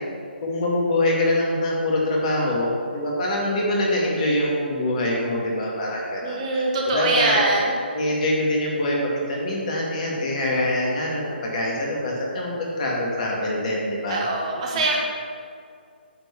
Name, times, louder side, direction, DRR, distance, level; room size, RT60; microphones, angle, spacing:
voice 1, 0.4-7.4 7.9-14.3 14.7-14.8, left 1 dB, 40° left, -3 dB, 2.2 m, -24 dB
voice 2, 6.2-7.8 14.1-15.0, right 2 dB, 35° right, -1 dB, 1.3 m, -23 dB
9.2 x 4.5 x 7.1 m, 2.3 s
figure-of-eight pair, 145°, 6 cm